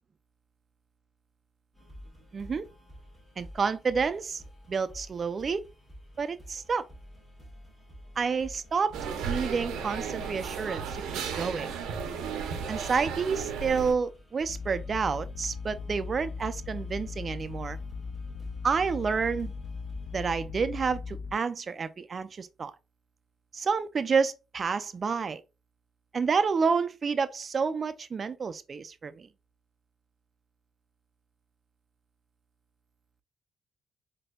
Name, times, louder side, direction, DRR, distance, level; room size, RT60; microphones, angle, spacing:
sound 1, 1.7-20.3, equal, 15° left, 1.6 m, -50 dB
voice 1, 2.3-2.6 3.4-4.4 4.7-5.6 6.2-6.8 8.2-9.0 9.3-11.0 11.4-11.7 12.7-17.8 18.6-19.5 20.1-22.7 23.5-25.4 26.1-29.3, right 5 dB, 40° right, 0.4 m, -29 dB
sound 2, 8.9-13.9, right 6 dB, 90° right, 0.6 m, -34 dB
sound 3, 14.5-21.3, left 5 dB, 50° left, 0.4 m, -38 dB
4.2 x 2.7 x 2.2 m
cardioid pair, 90°, 0 cm